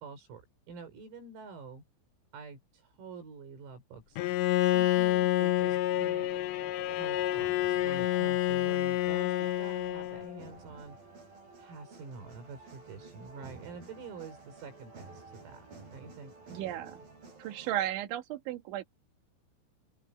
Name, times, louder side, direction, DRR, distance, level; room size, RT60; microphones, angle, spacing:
voice 1, 0.0-1.8 2.3-4.2 4.6-6.3 6.9-11.0 11.6-15.7 15.9-16.3, right 4 dB, 85° right, 8.7 m, -47 dB
Bowed string instrument, 4.2-10.4, left 14 dB, 75° left, 2.7 m, -28 dB
sound 1, 5.9-17.9, right 3 dB, 45° right, 9.8 m, -52 dB
voice 2, 16.5-17.0 17.4-18.8, right 12 dB, 65° right, 4.1 m, -34 dB
open air
omnidirectional pair, 6.0 m